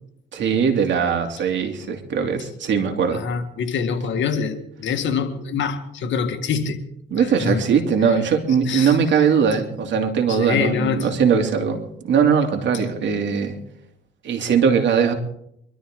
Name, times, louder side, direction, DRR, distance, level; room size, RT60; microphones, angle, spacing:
voice 1, 0.3-3.2 7.1-13.6 14.2-15.1, right 6 dB, 65° right, 3 dB, 2.8 m, -20 dB
voice 2, 3.1-6.8 7.1-7.6 8.6-9.3 10.3-11.1 14.4-14.5, left 6 dB, 70° left, 7 dB, 1.8 m, -25 dB
24.5 x 12.5 x 3.8 m, 0.74 s
cardioid pair, 90°, 20 cm